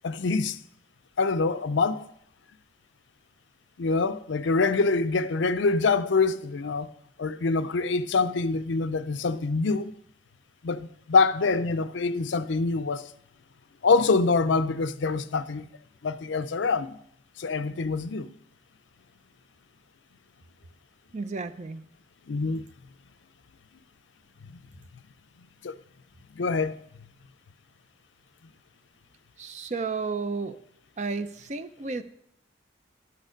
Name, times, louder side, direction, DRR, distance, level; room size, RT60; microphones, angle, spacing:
voice 1, 0.0-0.6 1.2-2.1 3.8-6.9 7.2-9.9 10.6-13.1 13.8-15.6 16.0-17.0 17.4-18.3 22.3-22.6 25.6-25.7 26.4-26.8, left 4 dB, 75° left, 0.5 m, -25 dB
voice 2, 21.1-21.8 29.4-30.6 31.0-32.0, right 4 dB, 40° right, 0.5 m, -32 dB
12.0 x 6.5 x 5.1 m
head